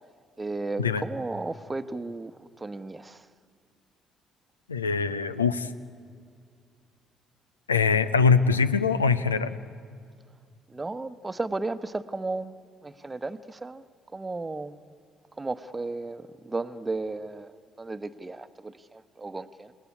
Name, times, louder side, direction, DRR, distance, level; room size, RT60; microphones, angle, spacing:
voice 1, 0.4-3.3 10.7-13.8 14.1-14.9 15.3-19.7, right 3 dB, 20° right, 11 dB, 1.0 m, -34 dB
voice 2, 4.7-5.7 7.7-9.6, left 5 dB, 80° left, 14 dB, 0.7 m, -23 dB
28.5 x 18.0 x 9.8 m, 2.2 s
figure-of-eight pair, 45°, 0 cm